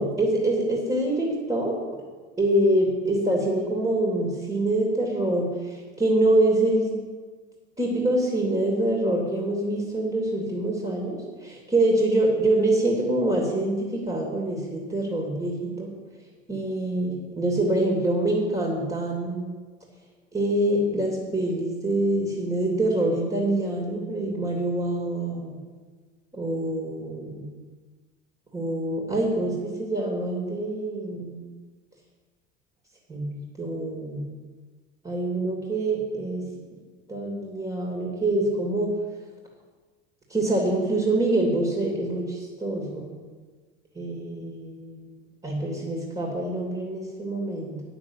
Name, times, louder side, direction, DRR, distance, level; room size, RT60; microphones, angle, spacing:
voice 1, 0.0-1.8 2.4-6.9 7.8-15.9 16.5-19.5 20.3-25.6 26.3-27.5 28.5-31.4 33.1-34.3 35.0-36.5 37.1-38.9 40.3-43.1 43.9-45.2 45.4-47.8, right 1 dB, 15° right, -1 dB, 3.0 m, -25 dB
9.6 x 6.8 x 8.1 m, 1.4 s
hypercardioid pair, 70°, 37 cm